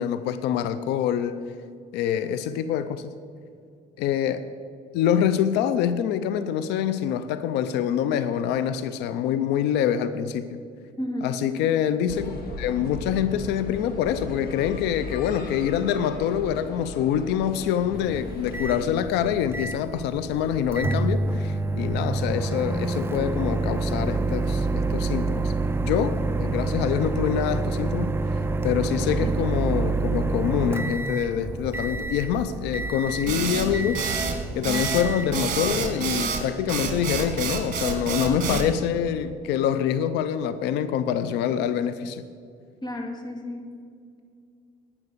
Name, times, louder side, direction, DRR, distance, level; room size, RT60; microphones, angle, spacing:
voice 1, 0.0-1.4 1.9-3.1 4.0-4.4 4.9-10.5 11.2-12.3 12.6-25.5 25.8-28.1 28.6-34.1 34.5-42.2, left 9 dB, 90° left, 12 dB, 0.6 m, -25 dB
voice 2, 11.0-11.4 42.8-43.7, left 1 dB, 25° left, 3 dB, 2.3 m, -32 dB
sound 1, 12.1-18.9, left 2 dB, 65° left, 2.0 m, -37 dB
Microwave oven, 17.9-35.9, right 3 dB, 15° right, 0.5 m, -28 dB
sound 2, 33.3-38.7, right 6 dB, 50° right, 2.2 m, -28 dB
11.0 x 9.8 x 6.7 m, 2.3 s
cardioid pair, 110°, 17 cm